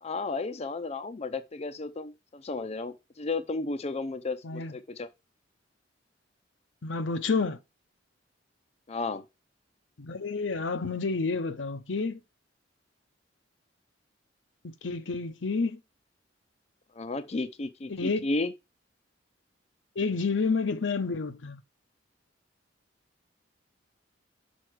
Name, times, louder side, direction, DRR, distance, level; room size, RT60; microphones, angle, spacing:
voice 1, 0.0-5.1 8.9-9.2 17.0-18.5, left 3 dB, 35° left, 0.5 m, -33 dB
voice 2, 6.8-7.6 10.0-12.2 14.8-15.8 17.9-18.3 20.0-21.6, left 4 dB, 80° left, 0.8 m, -29 dB
6.4 x 4.3 x 4.7 m
head